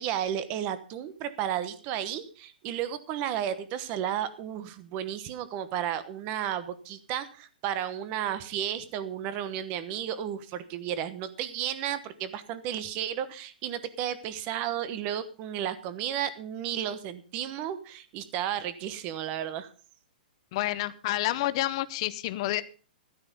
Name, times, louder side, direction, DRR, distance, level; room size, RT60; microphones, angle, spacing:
voice 1, 0.0-19.7, right 10 dB, 25° right, 13 dB, 1.1 m, -33 dB
voice 2, 20.5-22.6, left 16 dB, 35° left, 14 dB, 0.8 m, -29 dB
14.5 x 9.7 x 5.3 m, 0.39 s
hypercardioid pair, 165°, 5 cm